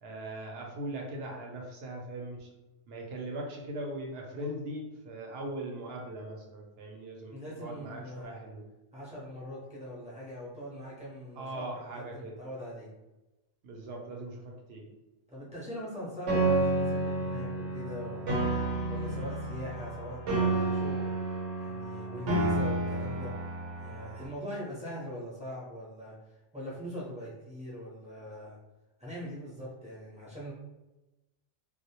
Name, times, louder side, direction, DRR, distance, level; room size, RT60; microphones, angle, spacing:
voice 1, 0.0-2.5 2.9-8.6 11.4-12.3 13.6-14.9, right 1 dB, 65° right, 0 dB, 0.8 m, -40 dB
voice 2, 7.3-8.3 8.9-12.9 13.9-14.0 15.3-18.4 18.9-21.1 21.6-23.3 23.8-26.2 26.5-28.6 29.0-30.5, equal, 10° right, -8 dB, 0.5 m, -42 dB
Piano, 16.3-24.3, right 2 dB, 85° right, 1.0 m, -30 dB
2.2 x 2.1 x 2.8 m, 1.0 s
omnidirectional pair, 1.2 m